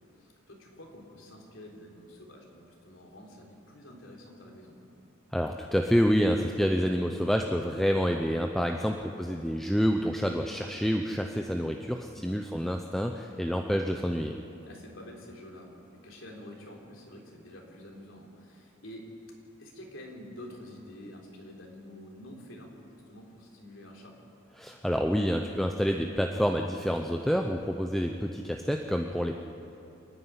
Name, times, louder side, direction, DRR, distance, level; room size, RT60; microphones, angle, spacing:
voice 1, 0.0-4.8 8.8-8.9 12.1-12.4 14.6-19.2 19.6-24.2, left 1 dB, 75° left, -1 dB, 3.7 m, -48 dB
voice 2, 5.3-14.4 24.6-29.4, equal, ahead, 3 dB, 0.6 m, -28 dB
27.5 x 9.9 x 9.8 m, 2.9 s
head